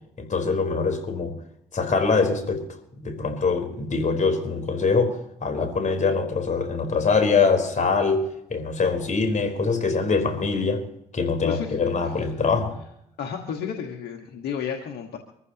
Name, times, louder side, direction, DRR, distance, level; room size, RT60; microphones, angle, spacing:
voice 1, 0.2-1.4 1.7-2.8 3.0-10.9 11.1-12.8, left 4 dB, 50° left, 4.2 m, -23 dB
voice 2, 11.4-11.8 12.0-12.2 13.2-15.2, left 7 dB, 75° left, 1.6 m, -32 dB
24.5 x 15.0 x 3.0 m
supercardioid pair, 60°, 17 cm